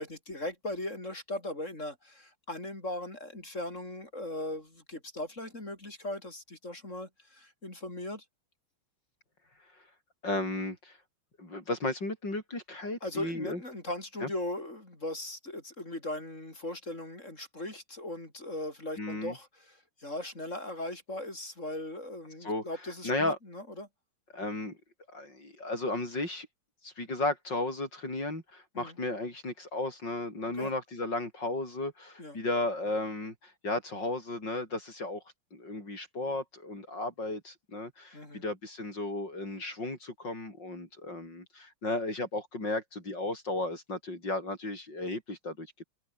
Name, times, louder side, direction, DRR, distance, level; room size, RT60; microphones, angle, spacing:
voice 1, 0.0-8.2 13.0-23.9 28.7-29.0 30.6-30.7 32.2-32.4 38.1-38.4, left 1 dB, 35° left, 6.1 m, -39 dB
voice 2, 10.2-11.0 11.4-13.6 14.2-14.3 19.0-19.3 22.4-22.6 23.0-23.4 24.3-24.8 25.1-26.5 26.8-35.2 35.5-45.8, left 2 dB, 55° left, 8.3 m, -34 dB
omnidirectional pair, 2.3 m